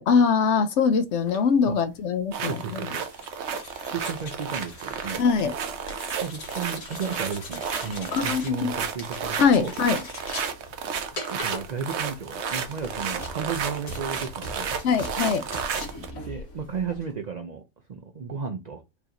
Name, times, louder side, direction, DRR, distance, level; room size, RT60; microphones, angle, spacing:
voice 1, 0.0-2.8 5.2-5.5 8.1-8.7 9.4-10.0 14.8-15.4, left 5 dB, 65° left, 0.8 m, -22 dB
sound 1, 1.1-17.1, left 2 dB, 85° left, 1.7 m, -41 dB
sound 2, 2.3-16.1, right 7 dB, 60° right, 0.9 m, -32 dB
voice 2, 2.4-3.0 3.9-5.2 6.2-9.7 11.3-14.7 16.2-18.8, right 6 dB, 80° right, 0.3 m, -34 dB
4.7 x 2.6 x 2.8 m
omnidirectional pair, 1.4 m